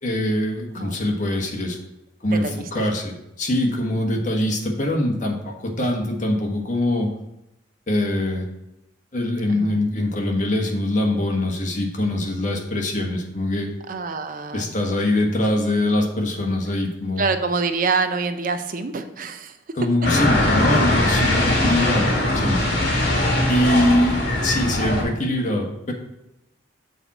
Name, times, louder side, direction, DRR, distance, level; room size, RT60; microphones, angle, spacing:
voice 1, 0.0-1.8 2.2-7.1 7.9-8.5 9.1-13.7 14.5-17.3 19.7-22.6 23.5-25.9, left 1 dB, 45° left, 0 dB, 1.4 m, -23 dB
voice 2, 13.9-14.7 17.2-19.5, right 4 dB, 45° right, 8 dB, 0.6 m, -25 dB
sound 1, 20.0-25.0, left 1 dB, 60° left, 2.2 m, -20 dB
7.0 x 4.2 x 5.9 m, 0.88 s
head